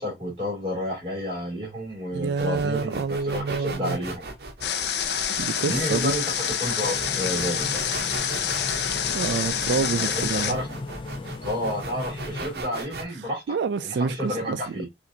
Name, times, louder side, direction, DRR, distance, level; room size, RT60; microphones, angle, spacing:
voice 1, 0.0-4.3 5.6-7.8 10.0-10.7 11.4-13.5 13.8-14.9, equal, 30° right, 2.6 m, -30 dB
voice 2, 2.1-4.0 5.4-6.1 9.1-10.6 13.5-14.8, right 5 dB, 80° right, 0.3 m, -27 dB
sound 1, 2.4-13.0, right 3 dB, 65° right, 0.8 m, -38 dB
Water, 4.6-10.5, left 8 dB, 75° left, 0.6 m, -27 dB
sound 2, 6.8-12.5, left 2 dB, 30° left, 0.4 m, -37 dB
5.7 x 2.6 x 2.6 m
head